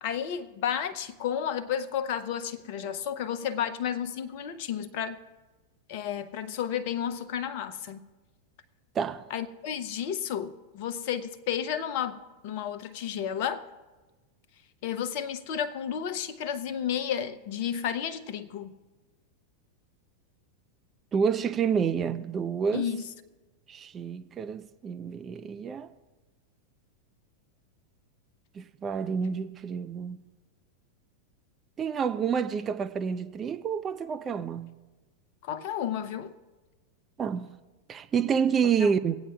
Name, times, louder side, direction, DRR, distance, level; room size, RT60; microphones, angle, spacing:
voice 1, 0.0-5.2 5.9-8.1 9.3-13.7 14.8-18.7 22.7-23.0 35.4-36.3 38.8-38.9, left 9 dB, 50° left, 0.6 m, -32 dB
voice 2, 21.1-22.9 23.7-25.9 28.5-30.2 31.8-34.7 37.2-37.5 37.9-39.2, right 6 dB, 25° right, 0.4 m, -28 dB
24.5 x 8.7 x 2.3 m
figure-of-eight pair, 90°, 0 cm